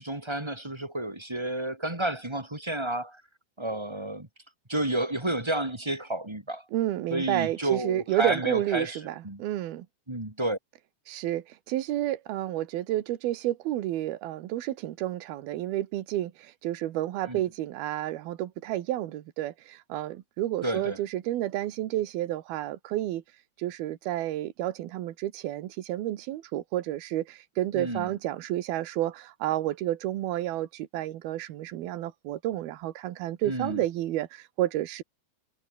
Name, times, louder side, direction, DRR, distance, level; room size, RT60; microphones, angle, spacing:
voice 1, 0.0-3.2 3.6-4.3 4.7-6.6 7.1-9.4 10.1-10.6 17.3-17.4 20.6-21.0 27.7-28.1 33.4-33.8, right 1 dB, 10° right, 1.9 m, -31 dB
voice 2, 6.7-9.9 11.1-23.2 23.6-35.0, right 14 dB, 80° right, 3.3 m, -30 dB
omnidirectional pair, 4.3 m